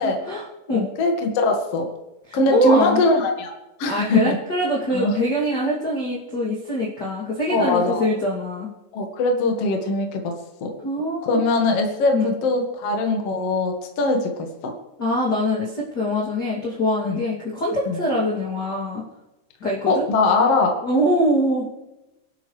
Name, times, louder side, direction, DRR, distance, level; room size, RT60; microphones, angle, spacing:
voice 1, 0.0-0.9 2.3-3.0 3.8-8.7 10.8-11.4 12.1-12.3 15.0-19.0 19.6-20.1 20.8-21.8, equal, 30° left, -5 dB, 2.2 m, -23 dB
voice 2, 0.7-1.9 2.3-3.5 3.8-4.4 4.9-5.2 7.5-8.0 8.9-10.3 10.6-10.8 11.2-14.7 17.0-17.2 17.9-18.0 19.9-20.8, left 2 dB, 55° left, 2 dB, 1.8 m, -21 dB
28.0 x 12.0 x 3.3 m, 0.98 s
omnidirectional pair, 5.5 m